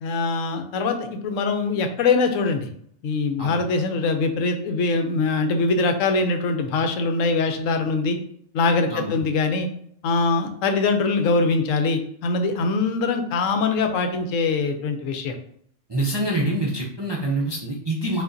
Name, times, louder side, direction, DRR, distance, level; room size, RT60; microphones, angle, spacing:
voice 1, 0.0-2.7 3.0-8.2 8.5-9.7 10.0-15.3, left 3 dB, 75° left, 6 dB, 0.9 m, -23 dB
voice 2, 15.9-18.2, right 1 dB, 35° right, -3 dB, 0.4 m, -25 dB
5.0 x 2.5 x 2.5 m, 0.64 s
omnidirectional pair, 1.4 m